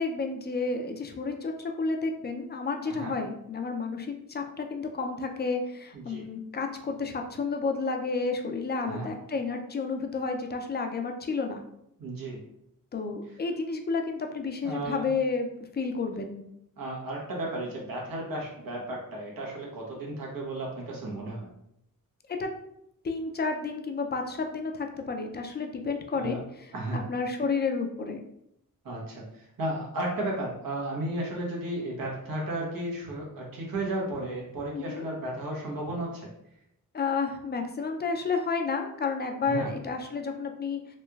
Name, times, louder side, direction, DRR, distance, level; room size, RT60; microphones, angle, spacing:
voice 1, 0.0-11.6 12.9-16.4 22.3-22.5 23.0-26.4 27.1-28.2 34.7-35.1 36.9-41.0, left 4 dB, 30° left, 4 dB, 0.4 m, -31 dB
voice 2, 5.9-6.3 8.8-9.1 12.0-12.4 14.6-15.1 16.8-21.5 26.2-26.4 26.7-27.0 28.8-36.3 39.4-39.7, right 1 dB, 80° right, -2 dB, 1.0 m, -34 dB
3.2 x 2.9 x 2.3 m, 0.77 s
wide cardioid pair, 110°, 34 cm